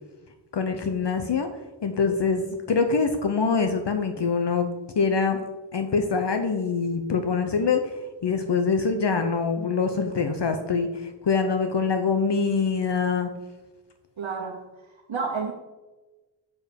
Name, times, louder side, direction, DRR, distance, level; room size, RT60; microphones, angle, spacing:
voice 1, 0.5-1.5 1.8-4.7 5.0-5.4 5.7-7.9 8.2-13.3, left 5 dB, 60° left, 6 dB, 0.9 m, -24 dB
voice 2, 14.2-14.6 15.1-15.5, right 5 dB, 85° right, -3 dB, 1.2 m, -29 dB
7.1 x 7.0 x 5.2 m, 1.2 s
wide cardioid pair, 55°, 46 cm